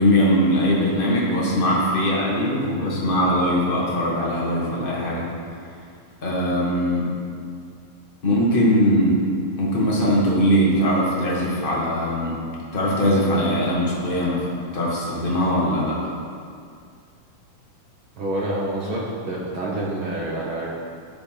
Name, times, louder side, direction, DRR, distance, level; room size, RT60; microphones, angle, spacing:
voice 1, 0.0-5.3 6.2-7.1 8.2-9.2 9.6-12.3 12.7-14.5 14.7-16.0, equal, 45° left, -5 dB, 0.6 m, -21 dB
voice 2, 18.2-20.7, right 1 dB, 70° right, -5 dB, 1.2 m, -27 dB
12.0 x 5.0 x 5.7 m, 2.3 s
omnidirectional pair, 3.9 m